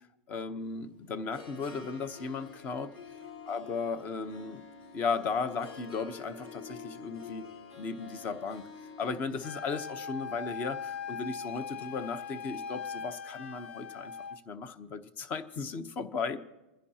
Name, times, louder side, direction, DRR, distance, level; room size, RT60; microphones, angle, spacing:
voice 1, 0.3-2.9 3.5-4.6 4.9-7.5 7.8-8.7 9.0-16.4, left 4 dB, 25° left, 12 dB, 0.9 m, -36 dB
Harp, 0.6-12.8, left 5 dB, 60° left, 6.0 m, -49 dB
Wind instrument woodwind instrument, 9.4-14.4, left 6 dB, 75° left, 0.9 m, -40 dB
29.5 x 10.5 x 2.9 m, 1.0 s
supercardioid pair, 150°, 6 cm